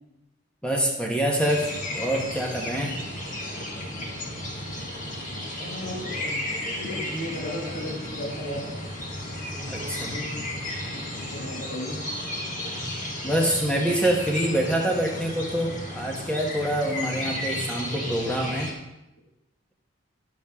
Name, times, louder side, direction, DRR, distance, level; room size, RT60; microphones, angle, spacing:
voice 1, 0.6-1.7 1.9-3.0 9.7-10.1 13.2-18.7, right 1 dB, 5° left, -1 dB, 1.2 m, -26 dB
sound 1, 1.4-18.7, left 1 dB, 40° left, 1.3 m, -33 dB
voice 2, 5.5-6.4 6.8-8.7 9.5-10.3 11.2-12.0, left 1 dB, 60° left, -5 dB, 2.0 m, -35 dB
10.5 x 7.2 x 3.6 m, 0.94 s
head